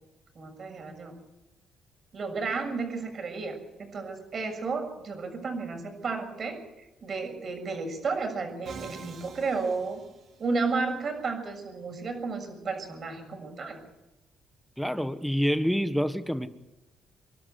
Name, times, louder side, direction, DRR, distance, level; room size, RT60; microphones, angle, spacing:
voice 1, 0.3-1.1 2.1-6.6 7.0-10.0 10.4-13.8, right 4 dB, 50° right, 5 dB, 6.9 m, -32 dB
Musical instrument, 8.7-10.7, right 6 dB, 65° right, 2.4 m, -46 dB
voice 2, 14.8-16.5, equal, ahead, 10 dB, 1.4 m, -27 dB
27.0 x 12.0 x 9.4 m, 1.0 s
cardioid pair, 90°, 0 cm